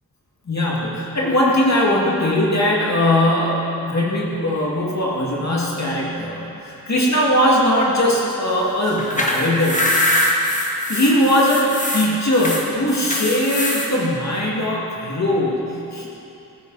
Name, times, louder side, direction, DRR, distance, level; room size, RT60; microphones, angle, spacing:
voice 1, 0.5-9.8 10.9-16.1, left 1 dB, 45° left, -4 dB, 2.2 m, -20 dB
sound 1, 8.9-13.9, left 1 dB, 20° left, 1.6 m, -22 dB
15.5 x 14.0 x 4.1 m, 2.9 s
wide cardioid pair, 125°, 36 cm